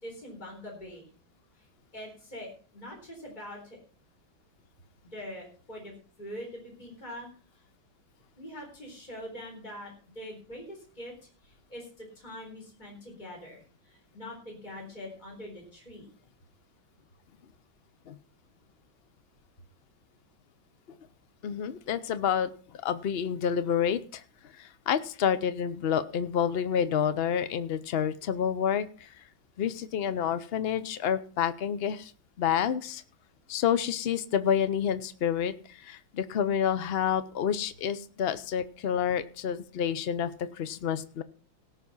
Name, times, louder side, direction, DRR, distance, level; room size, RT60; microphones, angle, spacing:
voice 1, 0.0-1.1 1.6-1.7 1.9-3.8 5.1-7.3 8.4-16.1, left 1 dB, 20° left, -1 dB, 4.1 m, -43 dB
voice 2, 21.4-24.2 24.6-29.1 29.6-32.1 32.4-33.0 33.5-41.2, left 8 dB, 90° left, 13 dB, 0.5 m, -29 dB
17.5 x 6.0 x 5.5 m, 0.40 s
omnidirectional pair, 2.1 m